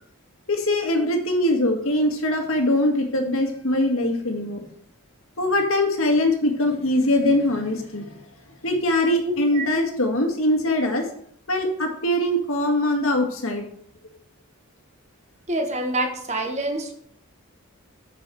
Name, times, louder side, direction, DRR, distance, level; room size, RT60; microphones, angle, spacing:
voice 1, 0.5-4.7 5.4-8.2 8.6-11.1 11.5-13.6, left 1 dB, 70° left, 3 dB, 1.9 m, -22 dB
voice 2, 9.3-9.7 15.5-16.9, right 1 dB, 30° right, 4 dB, 1.4 m, -26 dB
8.7 x 6.2 x 6.2 m, 0.66 s
head